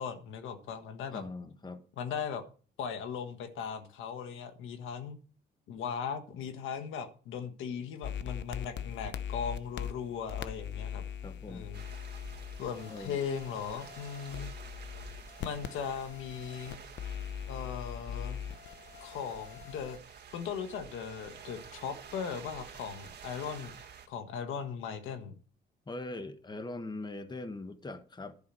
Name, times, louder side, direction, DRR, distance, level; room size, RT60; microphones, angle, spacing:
voice 1, 0.0-1.2 2.0-2.4 2.8-5.2 5.7-11.0 11.5-11.8 12.6-14.5 15.4-16.8 17.5-18.4 19.0-23.7 24.1-25.3, left 7 dB, 90° left, 1.5 m, -38 dB
voice 2, 1.1-1.8 11.2-11.6 12.9-13.3 25.9-28.3, left 2 dB, 20° left, 1.2 m, -41 dB
sound 1, 8.0-20.0, left 9 dB, 65° left, 0.8 m, -41 dB
sound 2, 11.7-24.1, right 7 dB, 60° right, 2.0 m, -50 dB
11.0 x 5.7 x 7.5 m
cardioid pair, 90°, 20 cm